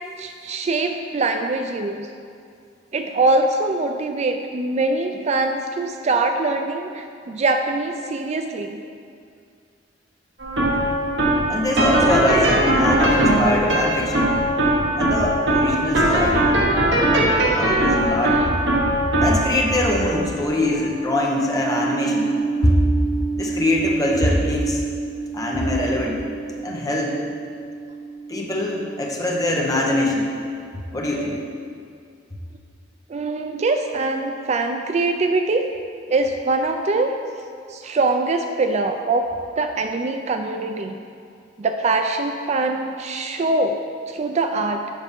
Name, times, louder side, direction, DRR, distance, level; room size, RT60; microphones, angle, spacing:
voice 1, 0.2-2.1 2.9-8.8 12.0-12.1 31.1-31.4 33.1-35.7 36.1-37.1 37.7-39.3 39.6-41.0 41.6-43.8 44.1-44.8, right 3 dB, 35° right, 5 dB, 0.3 m, -23 dB
sound 1, 10.4-27.6, right 1 dB, 70° right, 1.3 m, -22 dB
voice 2, 11.5-14.3 15.0-16.5 17.5-18.4 19.2-22.3 22.6-22.7 23.4-24.8 25.3-26.2 26.6-27.2 28.3-30.3 30.9-31.4, left 1 dB, 20° left, -2 dB, 1.0 m, -22 dB
7.3 x 5.6 x 5.2 m, 2.4 s
head